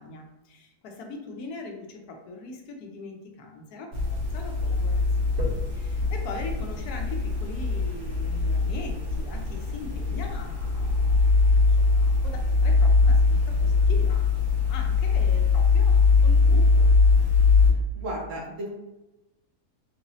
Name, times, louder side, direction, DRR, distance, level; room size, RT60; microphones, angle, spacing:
voice 1, 0.0-16.9, left 3 dB, 80° left, 3 dB, 1.1 m, -41 dB
sound 1, 3.9-17.7, left 4 dB, 80° right, 1.8 m, -22 dB
voice 2, 17.9-18.7, right 1 dB, 60° right, -1 dB, 1.0 m, -34 dB
3.8 x 2.9 x 2.7 m, 0.97 s
omnidirectional pair, 1.6 m